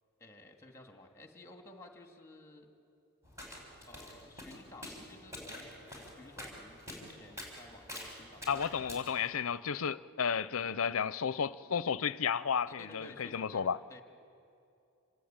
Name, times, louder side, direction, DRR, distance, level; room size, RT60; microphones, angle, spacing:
voice 1, 0.2-2.7 3.9-8.9 10.3-10.9 12.7-14.0, left 1 dB, 15° left, 2.2 m, -54 dB
sound 1, 3.2-9.1, left 1 dB, 15° right, 5.8 m, -47 dB
voice 2, 8.5-13.8, left 6 dB, 65° left, 0.6 m, -33 dB
27.5 x 20.5 x 8.9 m
head